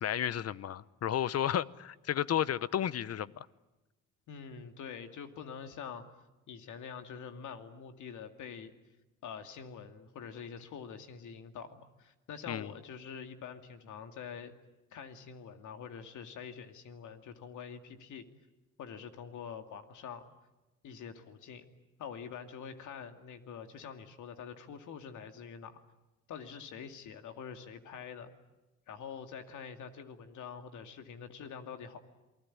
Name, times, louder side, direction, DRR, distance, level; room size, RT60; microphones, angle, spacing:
voice 1, 0.0-3.5 12.5-12.7, left 10 dB, 55° left, 18 dB, 0.9 m, -32 dB
voice 2, 4.3-6.0 6.5-8.7 9.2-14.5 14.9-18.2 18.8-20.3 20.8-21.7 22.0-25.8 26.3-28.3 28.9-32.0, left 7 dB, 75° left, 7 dB, 2.4 m, -45 dB
28.5 x 20.0 x 9.9 m, 1.0 s
cardioid pair, 90°, 30 cm